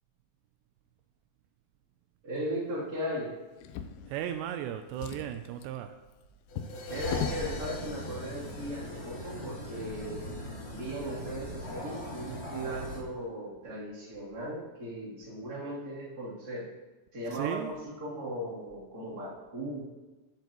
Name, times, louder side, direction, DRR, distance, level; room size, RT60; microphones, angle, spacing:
voice 1, 2.2-3.3 6.9-10.3 10.7-16.7 17.1-19.8, right 1 dB, 25° right, -7 dB, 2.8 m, -37 dB
Drawer open or close, 3.6-4.6 4.9-7.5 8.4-8.5 8.9-9.0, left 8 dB, 90° left, 2.1 m, -39 dB
voice 2, 4.1-6.0 17.3-17.7, right 11 dB, 85° right, 8 dB, 2.7 m, -35 dB
sound 1, 6.5-9.4, left 4 dB, 65° left, 2.9 m, -45 dB
sound 2, 6.9-13.0, left 1 dB, 40° left, 0.9 m, -40 dB
17.5 x 8.0 x 3.0 m, 1.2 s
omnidirectional pair, 5.1 m